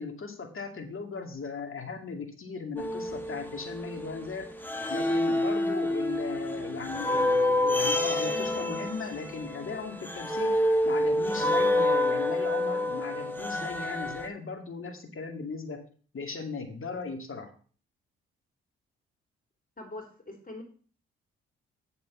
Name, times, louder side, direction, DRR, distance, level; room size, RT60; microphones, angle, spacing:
voice 1, 0.0-4.5 4.9-10.6 10.9-15.8 16.1-17.5, left 4 dB, 45° left, 6 dB, 2.3 m, -37 dB
sound 1, 2.8-4.2 4.6-14.3, left 1 dB, 5° left, 1.7 m, -28 dB
voice 2, 19.8-20.6, left 2 dB, 30° left, 3 dB, 3.8 m, -42 dB
8.0 x 5.4 x 6.9 m, 0.41 s
hypercardioid pair, 40°, 30 cm